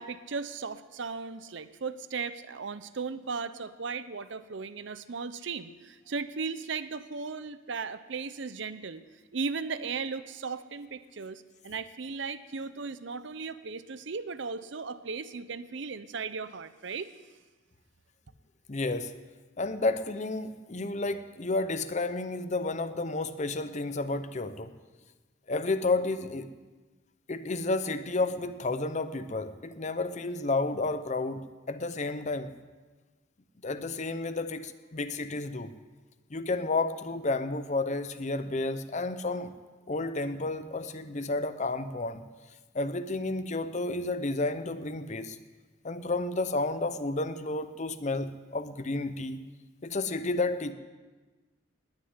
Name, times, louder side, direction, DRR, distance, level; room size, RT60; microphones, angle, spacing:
voice 1, 0.0-9.0 9.3-17.1, right 4 dB, 65° right, 13 dB, 0.7 m, -36 dB
voice 2, 18.7-19.1 19.6-24.7 25.5-26.5 27.3-32.5 33.6-35.7 36.3-39.5 39.9-42.2 42.7-45.4 45.8-49.4 49.8-50.7, left 2 dB, 35° left, 11 dB, 0.7 m, -31 dB
19.5 x 6.6 x 9.6 m, 1.3 s
head